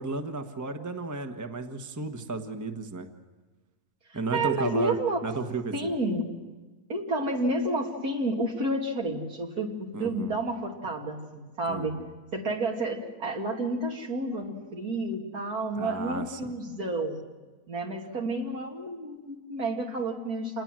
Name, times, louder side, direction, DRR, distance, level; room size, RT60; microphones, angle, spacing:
voice 1, 0.0-3.1 4.1-5.0 5.2-5.9 9.9-10.4 11.7-12.1 15.7-16.4, right 3 dB, 10° right, 5 dB, 1.2 m, -33 dB
voice 2, 4.1-5.2 5.7-6.3 6.9-12.0 12.3-17.2 17.7-20.6, right 2 dB, 70° right, 1 dB, 3.1 m, -30 dB
27.5 x 20.0 x 7.6 m, 1.3 s
omnidirectional pair, 1.6 m